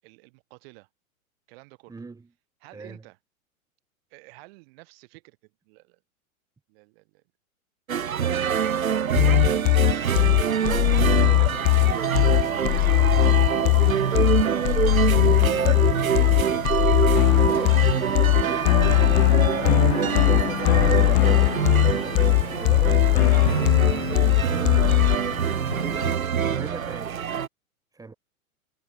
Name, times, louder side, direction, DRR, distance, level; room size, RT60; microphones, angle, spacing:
voice 1, 0.0-0.9 1.5-1.9 2.6-3.2 4.1-6.0 6.7-7.2 8.0-10.2 10.9-12.4 12.7-13.7 18.8-19.0 22.8-23.1, right 27 dB, 45° right, 8.0 m, -50 dB
voice 2, 1.9-2.3 2.7-3.0 11.1-12.1 15.1-17.9 18.5-18.9 19.6-21.7 22.6-23.0 23.5-23.8 24.3-25.1 25.7-27.2 27.9-28.1, right 4 dB, 10° right, 2.3 m, -41 dB
sound 1, 7.9-27.5, right 8 dB, 75° right, 1.1 m, -25 dB
sound 2, 9.2-25.2, left 32 dB, 30° left, 0.6 m, -20 dB
sound 3, 11.5-26.2, left 4 dB, 80° left, 4.3 m, -39 dB
figure-of-eight pair, 100°, 42 cm